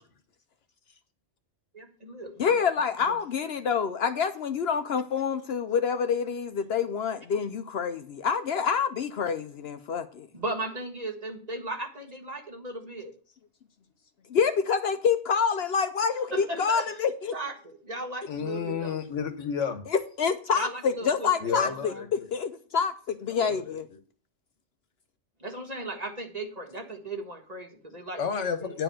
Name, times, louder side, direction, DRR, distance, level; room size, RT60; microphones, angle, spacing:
voice 1, 1.7-2.6 3.1-3.2 10.3-13.1 16.3-16.9 17.3-19.0 20.5-22.1 25.4-28.2 28.6-28.8, right 2 dB, 35° right, 3 dB, 1.6 m, -37 dB
voice 2, 2.4-10.3 14.3-17.4 20.2-23.9, left 6 dB, 65° left, 9 dB, 0.8 m, -27 dB
voice 3, 18.3-19.8 21.4-22.3 23.3-24.0 28.2-28.8, left 7 dB, 80° left, 9 dB, 1.4 m, -32 dB
9.9 x 4.6 x 7.5 m, 0.42 s
omnidirectional pair, 1.2 m